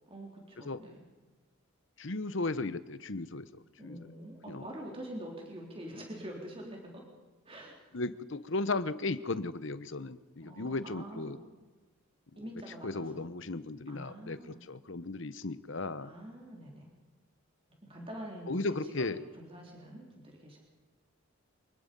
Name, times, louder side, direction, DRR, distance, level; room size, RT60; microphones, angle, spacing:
voice 1, 0.1-1.0 3.8-7.0 7.5-8.0 10.4-11.4 12.4-13.3 13.9-14.6 16.0-16.9 17.8-20.6, right 1 dB, 25° right, 0 dB, 3.6 m, -46 dB
voice 2, 2.0-3.5 3.8-4.0 4.5-4.6 7.9-11.4 12.8-16.1 18.5-19.2, left 3 dB, 60° left, 14 dB, 1.0 m, -35 dB
25.0 x 20.5 x 5.4 m, 1.3 s
head